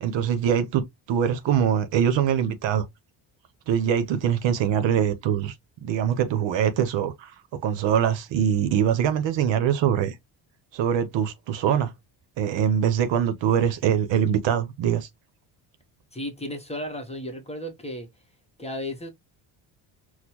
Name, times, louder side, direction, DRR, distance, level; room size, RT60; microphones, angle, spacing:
voice 1, 0.0-2.8 3.7-5.5 5.8-7.3 7.6-10.1 10.7-11.9 12.4-15.1, right 9 dB, 65° right, 0.8 m, -23 dB
voice 2, 16.1-18.1 18.6-19.1, left 1 dB, 15° left, 0.9 m, -34 dB
4.3 x 2.2 x 2.8 m
cardioid pair, 90°, 47 cm